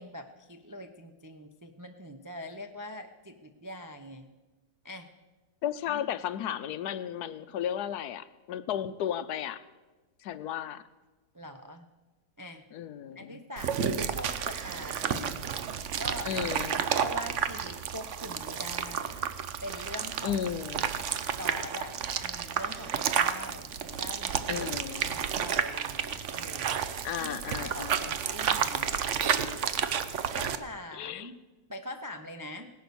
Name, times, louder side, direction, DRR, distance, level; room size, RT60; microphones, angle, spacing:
voice 1, 0.0-4.3 4.8-5.1 5.9-6.0 11.3-11.9 12.4-12.6 13.2-15.4 16.0-16.4 16.7-19.1 19.6-20.4 21.4-21.9 22.2-23.7 24.0-24.5 25.0-26.8 27.2-29.3 30.3-31.4 31.7-32.7, left 1 dB, 30° right, 5 dB, 0.3 m, -43 dB
voice 2, 5.6-9.6 10.2-10.8 12.7-13.4 16.2-16.8 20.2-20.9 24.5-25.2 27.0-28.2 30.9-31.3, left 10 dB, 75° left, 14 dB, 1.2 m, -34 dB
sound 1, 13.6-30.6, right 8 dB, 55° right, 0.9 m, -31 dB
17.5 x 10.5 x 6.9 m, 1.2 s
omnidirectional pair, 1.8 m